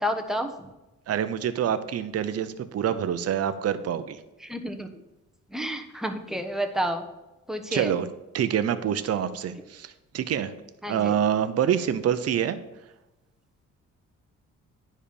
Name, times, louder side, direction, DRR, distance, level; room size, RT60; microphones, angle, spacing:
voice 1, 0.0-0.5 4.4-4.9 5.5-7.0 7.5-7.9 10.8-11.1, equal, ahead, 5 dB, 1.1 m, -30 dB
voice 2, 1.1-4.2 7.7-8.1 8.3-10.5 10.9-12.6, right 9 dB, 55° right, 11 dB, 0.8 m, -26 dB
10.0 x 4.4 x 7.0 m, 1.0 s
cardioid pair, 90°, 30 cm